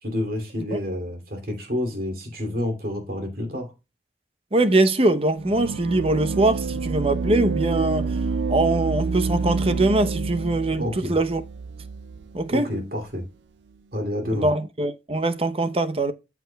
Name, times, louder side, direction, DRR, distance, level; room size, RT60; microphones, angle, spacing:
voice 1, 0.0-3.7 10.8-11.2 12.5-13.2 13.9-14.5, left 1 dB, 55° right, 2.7 m, -29 dB
voice 2, 4.5-8.1 8.5-11.4 12.3-12.7 14.3-16.1, right 2 dB, 35° right, 0.8 m, -22 dB
sound 1, 5.4-12.5, right 4 dB, 90° right, 0.4 m, -28 dB
14.0 x 5.9 x 2.3 m
head